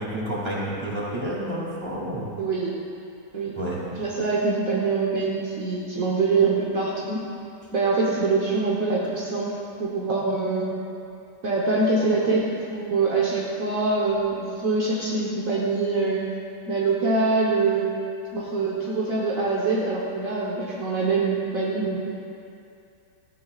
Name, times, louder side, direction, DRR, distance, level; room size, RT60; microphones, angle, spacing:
voice 1, 0.0-2.3 3.5-4.0, right 1 dB, 20° right, -6 dB, 3.1 m, -30 dB
voice 2, 2.4-2.8 3.3-3.6 3.9-7.2 7.7-10.7 11.4-16.2 16.7-17.9 18.3-22.1, right 3 dB, 55° right, -5 dB, 1.6 m, -24 dB
18.0 x 14.0 x 2.5 m, 2.6 s
omnidirectional pair, 1.8 m